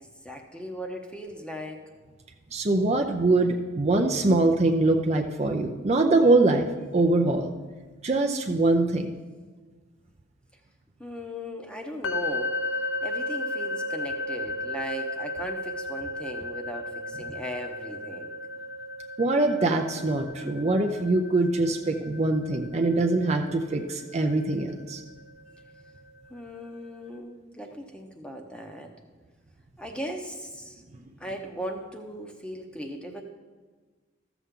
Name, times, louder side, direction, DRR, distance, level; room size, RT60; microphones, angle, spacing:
voice 1, 0.0-1.9 11.0-12.6 13.0-18.3 26.3-28.9 29.8-30.8 31.2-33.2, equal, 5° left, 3 dB, 0.8 m, -38 dB
voice 2, 2.5-6.7 6.9-7.5 8.0-9.1 19.2-25.0, right 2 dB, 35° right, 3 dB, 0.5 m, -23 dB
sound 1, 12.0-25.9, left 2 dB, 70° left, 0.7 m, -35 dB
14.0 x 7.0 x 3.7 m, 1.4 s
head